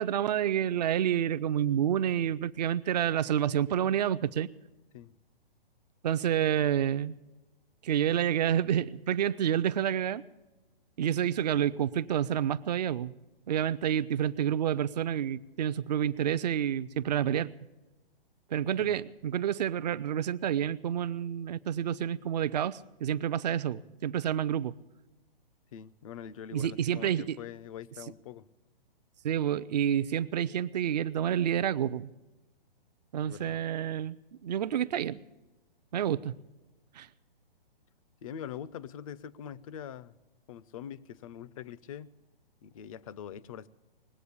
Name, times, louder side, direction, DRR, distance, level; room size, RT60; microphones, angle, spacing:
voice 1, 0.0-4.5 6.0-7.1 7.8-10.2 11.0-13.1 13.5-17.5 18.5-24.7 26.5-27.4 29.2-32.1 33.1-34.2 34.4-35.2 35.9-36.3 37.0-37.1, right 10 dB, 45° right, 0.5 m, -29 dB
voice 2, 25.7-28.5 33.2-33.6 38.2-40.2 40.5-42.1 42.6-43.7, left 9 dB, 35° left, 0.5 m, -43 dB
20.0 x 8.1 x 8.5 m
hypercardioid pair, 130°, 29 cm